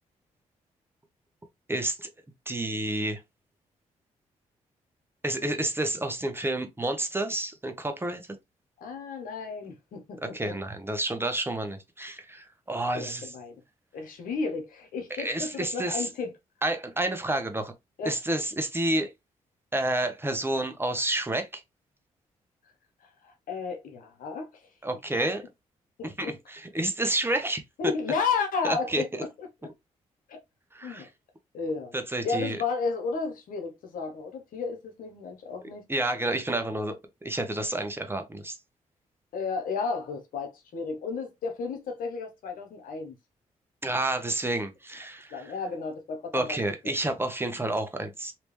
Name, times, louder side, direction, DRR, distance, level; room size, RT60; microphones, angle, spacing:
voice 1, 1.7-2.1 2.5-3.2 5.2-8.4 10.3-13.3 15.2-16.1 16.6-17.7 18.0-19.1 19.7-21.6 24.8-25.4 26.0-27.6 28.6-29.0 30.7-31.1 31.9-32.6 35.9-38.6 43.8-45.4 46.3-48.3, right 1 dB, 15° right, 0.9 m, -29 dB
voice 2, 8.8-10.6 12.9-13.6 13.9-16.3 18.0-18.2 23.2-24.7 26.0-26.3 27.8-29.5 30.3-30.4 30.8-31.1 31.5-32.0 32.2-35.8 39.3-43.2 45.3-46.6 46.8-46.9, left 5 dB, 75° left, 1.1 m, -33 dB
3.3 x 2.9 x 3.2 m
supercardioid pair, 55°, 14 cm